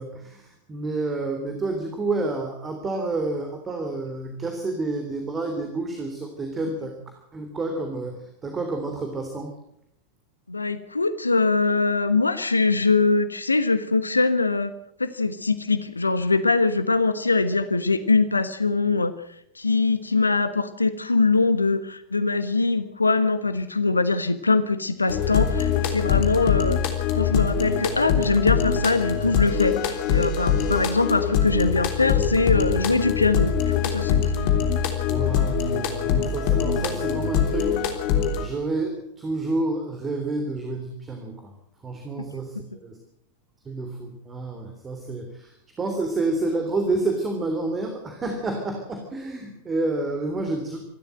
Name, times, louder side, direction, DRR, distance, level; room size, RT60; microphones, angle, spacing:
voice 1, 0.0-7.0 7.3-9.5 35.0-38.1 38.4-41.5 41.8-43.0 43.6-50.9, right 2 dB, 20° right, 5 dB, 3.3 m, -29 dB
voice 2, 10.5-14.7 15.0-19.1 19.5-26.8 27.1-34.5, left 3 dB, 80° left, 12 dB, 1.2 m, -22 dB
sound 1, 25.1-38.5, left 7 dB, 45° left, 3.3 m, -23 dB
26.5 x 13.0 x 7.7 m, 0.71 s
figure-of-eight pair, 90°, 0 cm